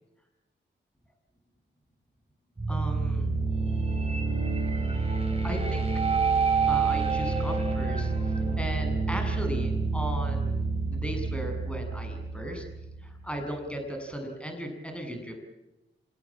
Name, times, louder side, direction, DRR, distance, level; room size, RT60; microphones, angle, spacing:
sound 1, 2.6-13.5, right 4 dB, 30° right, 7.1 m, -28 dB
voice 1, 2.7-3.3 5.4-5.9 6.7-8.1 8.6-10.6 10.9-12.6 13.0-15.4, equal, 5° left, 4 dB, 7.4 m, -36 dB
27.5 x 18.5 x 8.8 m, 0.96 s
cardioid pair, 65°, 20 cm